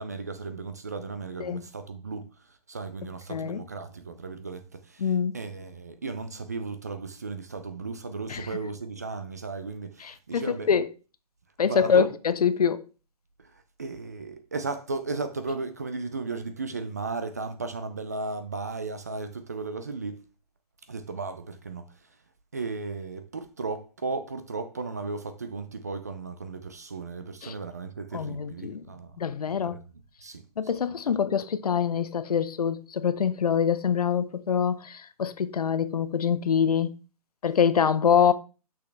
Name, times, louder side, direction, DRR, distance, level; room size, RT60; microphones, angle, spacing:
voice 1, 0.0-10.7 11.6-12.1 13.4-20.2 20.9-22.2 22.5-29.8 30.2-30.5 30.7-30.8 31.1-31.2, right 3 dB, 25° right, 0.4 m, -35 dB
voice 2, 3.3-3.6 5.0-5.3 8.3-8.5 10.3-10.9 11.6-12.8 27.4-27.5 28.1-28.8 29.2-29.8 30.6-36.9 37.4-38.3, left 7 dB, 70° left, 0.7 m, -25 dB
6.2 x 5.6 x 3.2 m
hypercardioid pair, 170°, 20 cm